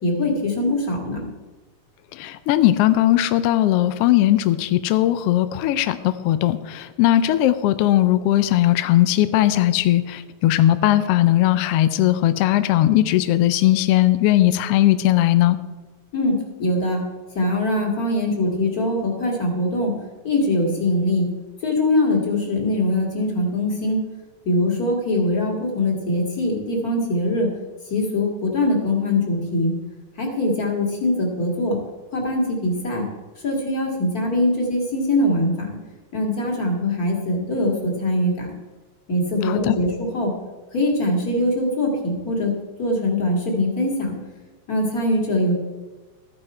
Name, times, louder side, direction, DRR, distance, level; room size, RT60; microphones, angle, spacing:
voice 1, 0.0-1.3 16.1-17.0 17.3-19.9 20.2-21.3 21.6-24.0 24.5-27.5 27.9-29.7 30.2-31.8 32.1-33.1 33.4-35.7 36.1-38.5 39.1-40.3 40.7-42.5 42.8-44.1 44.7-45.6, left 1 dB, 35° left, 0 dB, 2.2 m, -22 dB
voice 2, 2.1-15.6 39.4-39.8, left 14 dB, 80° left, 12 dB, 1.4 m, -18 dB
14.0 x 9.7 x 4.3 m, 1.2 s
omnidirectional pair, 3.3 m